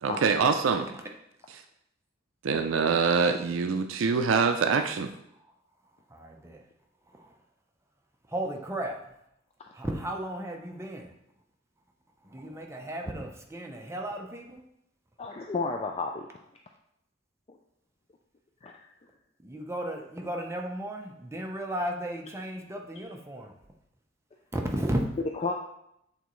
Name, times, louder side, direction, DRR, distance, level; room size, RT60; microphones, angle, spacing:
voice 1, 0.0-0.9 1.5-1.6 2.4-5.1, right 5 dB, 75° right, 7 dB, 0.4 m, -25 dB
voice 2, 6.1-6.6 8.3-9.0 9.7-11.1 12.2-14.6 19.4-23.5 24.5-25.1, right 1 dB, 15° right, 2 dB, 0.6 m, -34 dB
voice 3, 15.2-16.3 17.5-17.6 18.6-18.9 25.3-25.5, left 3 dB, 30° left, 3 dB, 0.4 m, -32 dB
8.1 x 4.0 x 3.1 m, 0.78 s
head